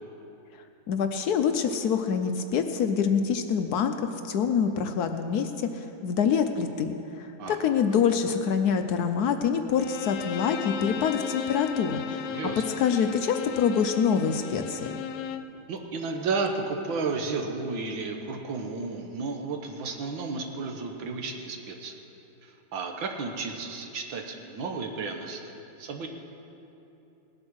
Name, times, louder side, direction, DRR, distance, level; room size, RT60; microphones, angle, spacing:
voice 1, 0.9-12.4 12.8-14.9, left 7 dB, 70° left, 7 dB, 1.0 m, -26 dB
voice 2, 7.4-7.7 12.3-12.6 15.7-22.0 22.4-26.1, right 4 dB, 90° right, 3 dB, 1.9 m, -33 dB
Bowed string instrument, 9.8-15.6, left 7 dB, 90° left, 1.4 m, -35 dB
18.0 x 7.9 x 6.3 m, 2.9 s
omnidirectional pair, 2.1 m